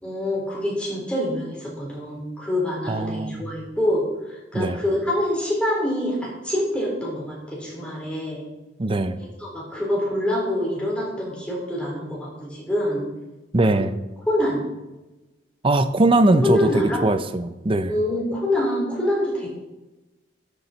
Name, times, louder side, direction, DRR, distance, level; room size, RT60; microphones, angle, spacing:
voice 1, 0.0-8.4 9.2-13.0 13.7-13.8 14.3-14.6 16.4-17.0 17.9-19.5, left 1 dB, 5° left, -4 dB, 4.2 m, -25 dB
voice 2, 2.9-3.4 4.5-4.8 8.8-9.2 13.5-14.0 15.6-18.0, right 2 dB, 30° right, 11 dB, 0.6 m, -21 dB
13.0 x 6.9 x 4.5 m, 1.0 s
head